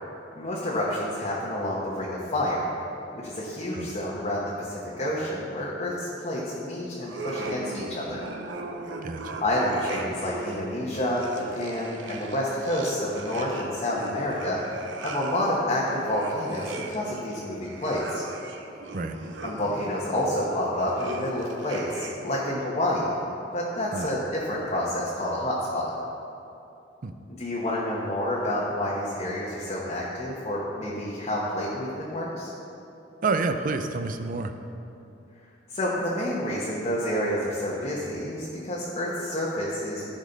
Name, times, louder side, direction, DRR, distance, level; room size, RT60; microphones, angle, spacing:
voice 1, 0.4-2.7 3.1-8.2 9.4-14.6 15.0-18.2 19.4-23.1 23.5-25.9 27.4-32.5 35.7-40.1, left 1 dB, 35° left, -6 dB, 1.1 m, -29 dB
sound 1, 7.0-22.4, right 2 dB, 90° right, 0.8 m, -39 dB
voice 2, 9.0-9.4 18.9-19.2 23.9-24.1 27.0-27.1 33.2-34.5, right 3 dB, 50° right, 8 dB, 0.5 m, -28 dB
14.0 x 5.2 x 4.0 m, 2.8 s
head